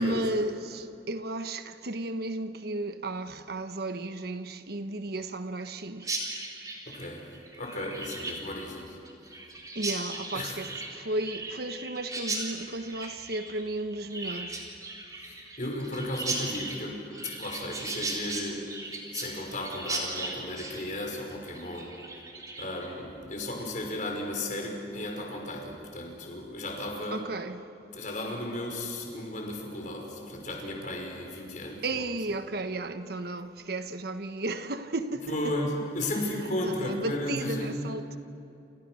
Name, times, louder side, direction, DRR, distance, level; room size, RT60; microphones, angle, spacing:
voice 1, 0.0-6.2 9.7-14.6 27.1-27.6 31.8-35.5 36.3-38.2, right 2 dB, 60° right, 1.3 m, -34 dB
Chirp tweet, 6.0-22.9, right 2 dB, 20° right, 4.1 m, -37 dB
voice 2, 6.9-9.0 10.3-10.6 15.2-22.0 22.6-27.2 27.9-31.8 35.3-37.9, left 1 dB, 45° left, 5.7 m, -35 dB
29.0 x 28.5 x 6.4 m
head